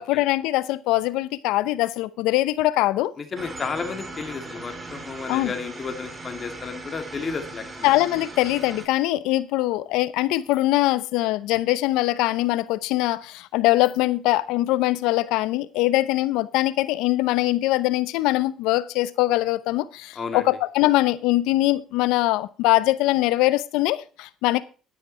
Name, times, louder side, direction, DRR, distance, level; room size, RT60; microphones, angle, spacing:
voice 1, 0.0-3.1 5.3-5.5 7.8-24.6, left 17 dB, 80° left, 0.7 m, -22 dB
voice 2, 3.2-7.9 20.1-20.5, left 5 dB, 40° left, 2.5 m, -32 dB
sound 1, 3.4-8.9, right 2 dB, 25° right, 3.1 m, -39 dB
11.0 x 10.0 x 4.2 m
supercardioid pair, 80°, 0 cm